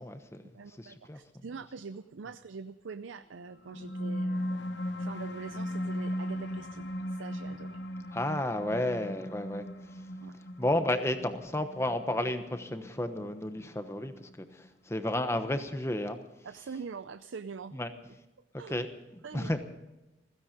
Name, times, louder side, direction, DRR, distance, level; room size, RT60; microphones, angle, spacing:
voice 1, 0.0-1.4 8.1-10.0 10.6-16.2 17.7-17.9 18.7-19.6, left 1 dB, 15° left, 8 dB, 1.1 m, -32 dB
voice 2, 0.5-4.6 5.0-7.8 10.2-10.4 16.4-17.8 18.6-18.7 19.2-19.5, right 5 dB, 85° right, 12 dB, 0.5 m, -44 dB
sound 1, 3.5-14.5, equal, 65° left, 1.0 m, -37 dB
16.0 x 16.0 x 5.2 m, 1.0 s
head